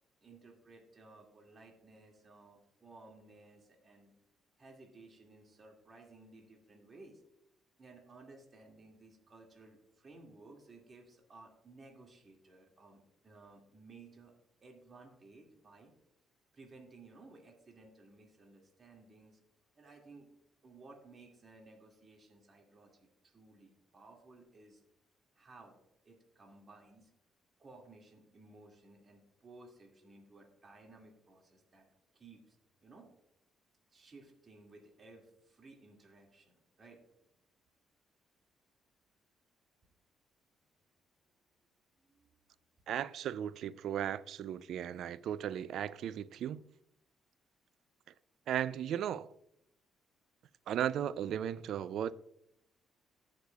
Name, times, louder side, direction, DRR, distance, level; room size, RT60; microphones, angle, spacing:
voice 1, 0.2-4.1 4.6-7.2 7.8-14.3 14.6-15.9 16.5-19.4 19.8-20.3 20.6-24.8 25.3-25.8 26.0-27.1 27.6-31.8 32.1-32.6 32.8-33.1 33.9-37.0 41.9-42.4, right 3 dB, 40° right, 2.1 m, -57 dB
voice 2, 42.9-46.6 48.5-49.3 50.7-52.1, right 10 dB, 75° right, 0.3 m, -36 dB
18.5 x 6.4 x 2.3 m
cardioid pair, 90°, 0 cm